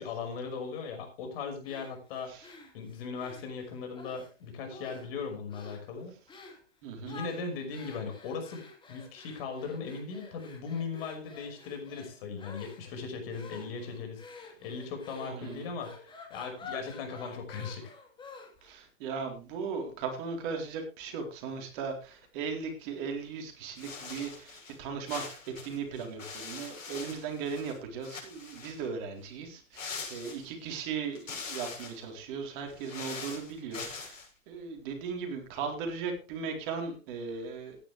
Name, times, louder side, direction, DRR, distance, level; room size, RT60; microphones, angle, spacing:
voice 1, 0.0-2.4 2.7-6.2 7.1-17.9, left 5 dB, 45° left, 4 dB, 5.7 m, -38 dB
sound 1, 1.6-4.3 4.7-5.2 5.5-5.9 6.3-6.6 7.0-18.7, left 4 dB, 10° left, 2.6 m, -49 dB
voice 2, 6.8-7.2 15.2-15.7 18.6-34.2 34.5-37.8, right 5 dB, 40° right, 3 dB, 4.0 m, -37 dB
sound 2, 23.8-24.8 25.1-27.8 28.0-28.9 29.7-30.7 31.1-32.0 32.7-34.3, left 4 dB, 85° left, 7.3 m, -43 dB
16.0 x 10.5 x 3.4 m, 0.33 s
hypercardioid pair, 135°, 39 cm